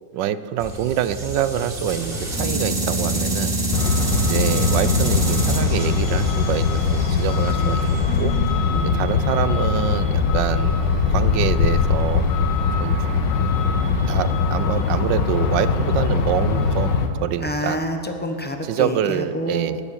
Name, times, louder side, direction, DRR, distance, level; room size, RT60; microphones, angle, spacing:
voice 1, 0.1-3.6 4.2-8.3 8.8-10.8 11.1-12.3 12.8-13.0 14.1-16.9 17.2-17.8 18.6-19.8, right 10 dB, 85° right, 14 dB, 1.3 m, -26 dB
sound 1, 0.6-8.7, right 1 dB, 30° right, 2.2 m, -26 dB
Truck, 3.7-17.1, left 5 dB, 90° left, 1.6 m, -21 dB
voice 2, 7.5-9.1 17.4-19.7, equal, 10° left, 4 dB, 0.6 m, -29 dB
18.5 x 6.9 x 8.9 m, 2.6 s
omnidirectional pair, 1.9 m